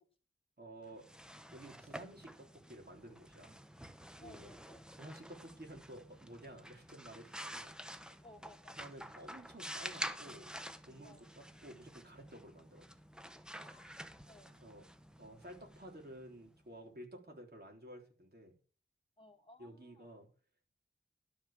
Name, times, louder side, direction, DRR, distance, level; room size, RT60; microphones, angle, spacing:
voice 1, 0.6-1.1 1.5-3.5 4.2-4.5 5.0-7.8 8.8-10.5 10.9-12.8 14.5-14.8 15.2-18.5 19.6-20.3, right 1 dB, 50° right, 1 dB, 3.7 m, -52 dB
sound 1, 0.9-16.6, equal, 5° right, 0.9 m, -49 dB
voice 2, 4.2-4.9 8.2-8.8 11.0-11.3 13.6-14.0 14.3-14.5 17.1-17.2 19.2-20.1, left 1 dB, 25° left, 3 dB, 2.5 m, -60 dB
12.0 x 5.5 x 7.4 m, 0.39 s
wide cardioid pair, 65°, 21 cm